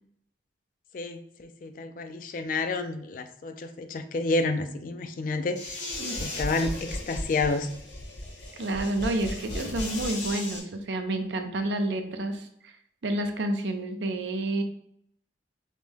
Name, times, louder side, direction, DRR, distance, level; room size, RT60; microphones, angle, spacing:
voice 1, 0.9-5.8 6.2-7.7, left 3 dB, 45° left, 9 dB, 0.3 m, -30 dB
sound 1, 5.6-10.6, left 1 dB, 70° left, 1.1 m, -35 dB
voice 2, 5.8-6.2 8.6-12.7 13.0-14.6, right 1 dB, 70° right, 6 dB, 0.5 m, -29 dB
5.1 x 2.1 x 3.3 m, 0.68 s
head